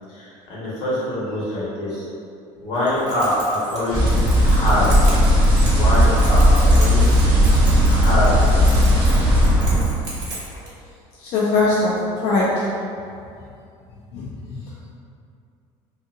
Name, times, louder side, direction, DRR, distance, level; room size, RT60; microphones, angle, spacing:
voice 1, 0.1-2.1 2.6-5.0 5.7-7.5 7.8-8.5 9.2-9.3, left 1 dB, 85° left, -9 dB, 1.3 m, -24 dB
Keys jangling, 2.8-10.7, right 2 dB, 35° right, 1.0 m, -36 dB
sound 1, 3.8-9.7, right 1 dB, 90° right, 0.7 m, -34 dB
sound 2, 3.9-9.8, equal, 15° right, 0.5 m, -16 dB
voice 2, 11.2-12.7 14.1-14.7, left 3 dB, 55° left, -6 dB, 0.4 m, -21 dB
2.8 x 2.6 x 2.5 m, 2.5 s
cardioid pair, 135°, 12 cm